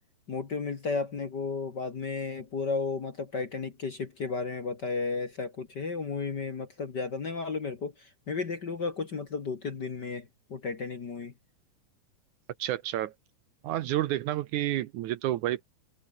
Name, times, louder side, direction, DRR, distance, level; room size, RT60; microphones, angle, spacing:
voice 1, 0.3-11.3, left 4 dB, 40° left, 1.8 m, -33 dB
voice 2, 12.6-13.1 13.6-15.6, right 14 dB, 75° right, 2.1 m, -30 dB
omnidirectional pair, 3.9 m